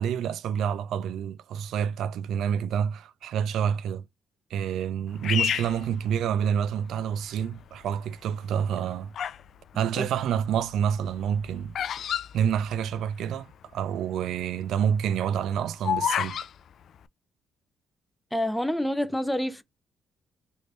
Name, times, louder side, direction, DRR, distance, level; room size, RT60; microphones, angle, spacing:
voice 1, 0.0-4.0 4.5-9.1 9.7-11.7 12.3-16.4, right 8 dB, 80° right, 0.3 m, -28 dB
Bird vocalization bird call bird song, 5.2-6.7 7.4-7.8 8.6-9.5 9.8-13.3 13.5-13.6 13.8-14.2 14.6-16.5, left 9 dB, 65° left, 0.3 m, -30 dB
voice 2, 18.3-19.6, left 1 dB, 5° left, 0.6 m, -27 dB
3.2 x 2.6 x 3.2 m
cardioid pair, 90°, 0 cm